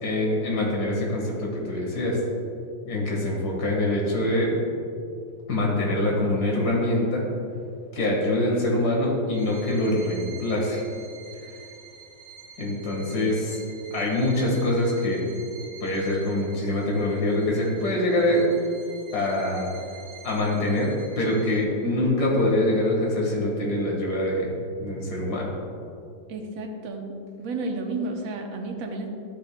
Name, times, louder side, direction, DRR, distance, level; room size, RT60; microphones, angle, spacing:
voice 1, 0.0-2.2 2.9-4.5 5.5-7.2 7.9-10.8 12.6-13.6 13.9-15.3 15.8-18.5 19.1-19.7 20.2-20.9 21.2-24.5 24.8-25.5, left 1 dB, 50° left, -2 dB, 2.1 m, -24 dB
Bowed string instrument, 9.3-21.8, right 6 dB, 80° right, 2.7 m, -47 dB
voice 2, 21.8-22.2 26.3-27.1 27.4-29.1, right 3 dB, 55° right, 3 dB, 1.0 m, -31 dB
11.5 x 8.4 x 2.2 m, 2.5 s
omnidirectional pair, 2.2 m